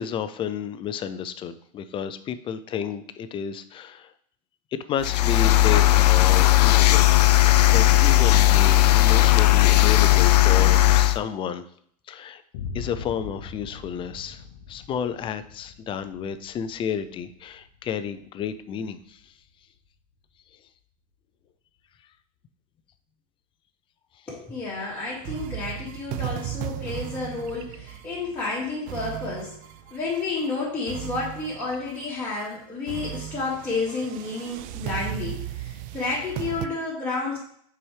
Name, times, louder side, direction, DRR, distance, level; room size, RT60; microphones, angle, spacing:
voice 1, 0.0-4.1 4.7-11.7 12.1-12.4 12.7-19.3, left 8 dB, 25° left, 12 dB, 0.4 m, -31 dB
sound 1, 5.0-11.2, left 15 dB, 85° left, 0.4 m, -17 dB
Boom, 12.5-20.4, left 5 dB, 60° left, 0.7 m, -42 dB
voice 2, 24.3-29.5 29.9-37.4, left 3 dB, 10° left, -11 dB, 2.3 m, -30 dB
sound 2, 25.2-30.5 30.9-32.0 32.4-32.5 32.9-36.7, right 12 dB, 45° right, 0.4 m, -36 dB
5.9 x 4.7 x 3.3 m, 0.63 s
hypercardioid pair, 120°, 20 cm